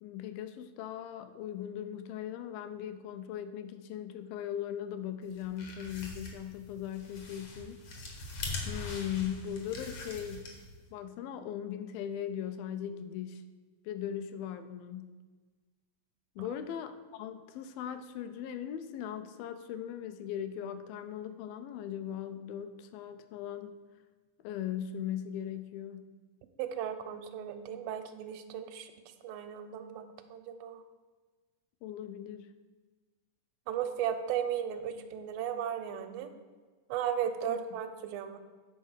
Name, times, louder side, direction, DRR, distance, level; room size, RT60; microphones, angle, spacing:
voice 1, 0.0-7.8 8.2-8.3 8.7-10.5 10.9-13.4 13.9-15.2 16.4-23.8 24.4-26.1 31.8-32.5 37.5-37.6, left 9 dB, 85° left, 9 dB, 2.3 m, -39 dB
sound 1, 5.3-10.8, left 3 dB, 65° left, 1.3 m, -42 dB
voice 2, 26.6-28.9 29.2-30.8 33.7-36.3 36.9-38.4, right 9 dB, 85° right, 7 dB, 2.3 m, -36 dB
8.3 x 4.3 x 6.2 m, 1.4 s
omnidirectional pair, 4.1 m